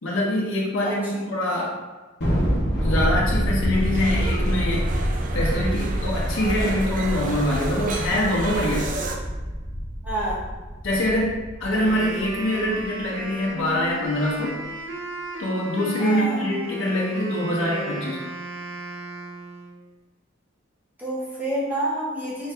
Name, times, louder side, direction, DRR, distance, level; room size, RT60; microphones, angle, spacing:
voice 1, 0.0-1.8 2.8-4.9 5.3-8.9 10.8-14.6 15.4-18.2, left 1 dB, 80° left, -4 dB, 0.9 m, -24 dB
Thunder, 2.2-12.8, equal, 60° left, 1.2 m, -26 dB
sound 1, 3.7-9.2, right 3 dB, 45° right, 0.5 m, -33 dB
voice 2, 10.0-10.4 16.0-16.4 21.0-22.5, right 1 dB, 10° right, -7 dB, 1.2 m, -28 dB
Wind instrument woodwind instrument, 11.6-19.8, equal, 80° right, 0.7 m, -34 dB
4.5 x 2.8 x 3.5 m, 1.3 s
head